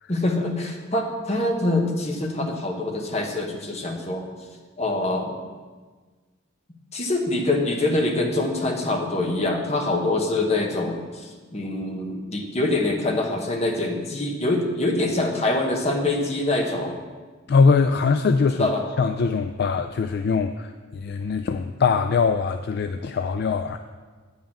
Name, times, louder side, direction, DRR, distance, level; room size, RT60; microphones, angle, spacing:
voice 1, 0.1-4.3 4.8-5.3 6.9-17.0 18.5-18.8, left 2 dB, 35° left, 1 dB, 1.2 m, -25 dB
voice 2, 17.5-18.7 19.0-23.8, left 5 dB, 55° left, 8 dB, 0.3 m, -22 dB
8.8 x 5.5 x 6.9 m, 1.4 s
head